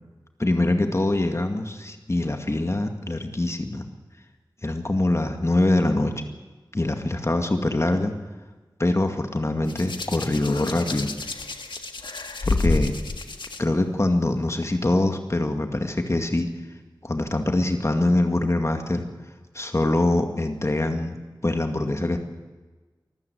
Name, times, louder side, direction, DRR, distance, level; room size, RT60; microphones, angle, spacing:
voice 1, 0.4-3.8 4.6-6.1 6.7-8.1 8.8-11.1 12.4-12.9 13.6-16.5 17.0-19.1 19.5-21.2 21.4-22.2, left 2 dB, 35° left, 5 dB, 2.2 m, -24 dB
Hands, 9.7-13.6 14.6-14.9, left 3 dB, 85° left, 1.6 m, -29 dB
24.5 x 14.5 x 8.1 m, 1.3 s
wide cardioid pair, 60°, 8 cm